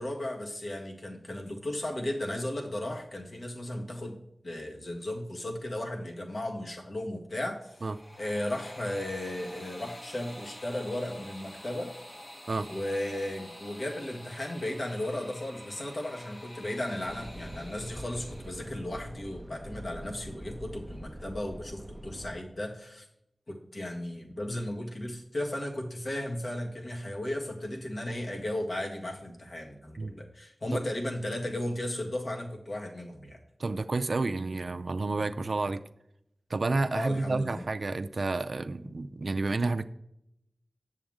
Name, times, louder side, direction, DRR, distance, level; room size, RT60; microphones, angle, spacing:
voice 1, 0.0-4.2 4.4-7.8 8.2-11.9 12.7-23.0 23.5-33.4 36.9-37.7 38.8-39.0, left 1 dB, 60° left, 1 dB, 1.6 m, -35 dB
sound 1, 7.6-18.7, left 1 dB, 35° left, 1.1 m, -48 dB
sound 2, 17.0-22.4, equal, 5° right, 0.6 m, -44 dB
voice 2, 33.6-35.8 36.5-39.9, right 3 dB, 65° right, 9 dB, 0.4 m, -30 dB
7.5 x 7.1 x 3.6 m, 0.78 s
wide cardioid pair, 65°, 0 cm